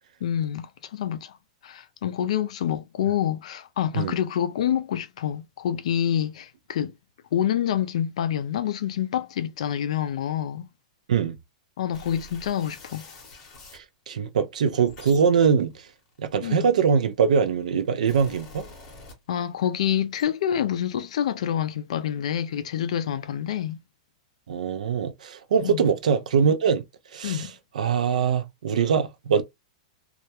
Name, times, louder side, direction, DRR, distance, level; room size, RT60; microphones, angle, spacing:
voice 1, 0.2-1.4 1.6-6.9 7.3-10.7 11.8-13.1 16.4-16.7 19.3-23.8 25.6-25.9 27.2-27.5, left 10 dB, 60° left, 0.3 m, -27 dB
sound 1, 11.9-13.8 14.6-16.9 17.7-19.6 19.9-20.2, left 2 dB, 25° left, 0.8 m, -47 dB
voice 2, 13.7-15.7 16.2-18.7 24.5-26.8 27.1-27.5 27.7-29.4, right 6 dB, 85° right, 0.4 m, -23 dB
2.3 x 2.1 x 2.7 m
supercardioid pair, 175°, 4 cm